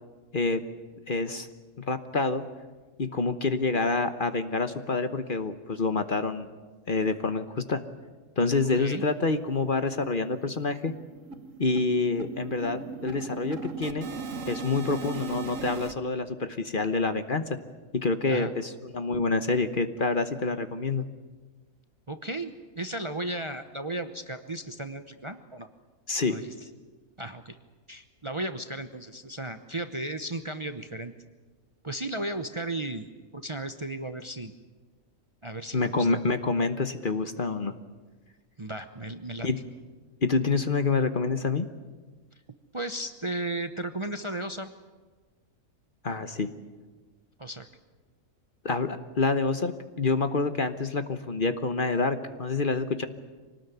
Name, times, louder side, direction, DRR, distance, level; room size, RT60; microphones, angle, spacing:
voice 1, 1.1-1.5 1.8-2.4 3.0-6.5 6.9-7.8 8.4-10.9 11.6-14.1 14.5-17.4 17.9-21.0 26.1-26.4 35.7-37.7 39.4-39.6 40.2-41.7 46.0-46.5 48.6-53.1, left 3 dB, 40° left, 10 dB, 1.2 m, -27 dB
sound 1, 8.7-8.8 9.1-9.2 9.5-9.7 10.0-15.9, right 4 dB, 70° right, 1.6 m, -38 dB
voice 2, 22.1-25.7 26.2-26.5 27.2-27.6 27.9-31.1 31.8-33.0 33.3-34.5 35.4-36.2 38.6-39.5 42.7-44.7 47.4-47.7, right 1 dB, 25° right, 8 dB, 0.9 m, -35 dB
25.0 x 19.0 x 9.3 m, 1.3 s
omnidirectional pair, 1.4 m